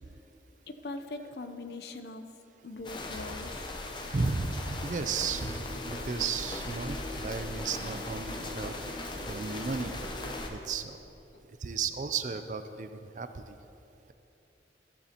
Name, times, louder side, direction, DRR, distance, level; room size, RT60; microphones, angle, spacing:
voice 1, 0.7-2.3 2.6-3.7, left 2 dB, 65° left, 8 dB, 0.6 m, -41 dB
sound 1, 2.8-10.5, left 2 dB, 25° left, 0.7 m, -39 dB
voice 2, 4.0-8.7 9.3-9.9 10.5-11.0 11.6-13.6, right 5 dB, 45° right, 10 dB, 0.4 m, -34 dB
sound 2, 4.9-10.4, equal, 75° right, 1.6 m, -43 dB
13.5 x 11.0 x 2.9 m, 2.9 s
head